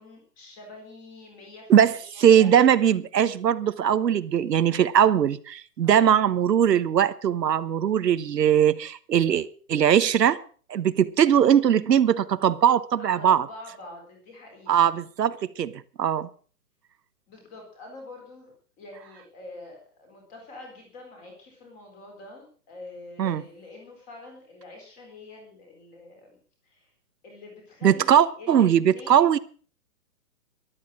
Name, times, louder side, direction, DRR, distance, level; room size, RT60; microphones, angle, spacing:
voice 1, 0.0-2.5 5.8-6.0 13.0-14.9 17.3-26.4 26.6-26.9 27.2-29.4, left 2 dB, 15° left, 4.1 m, -45 dB
voice 2, 1.7-10.4 10.7-13.5 14.7-16.3 23.2-23.4 27.8-29.4, right 9 dB, 85° right, 1.2 m, -20 dB
13.0 x 12.0 x 6.2 m
hypercardioid pair, 175°, 48 cm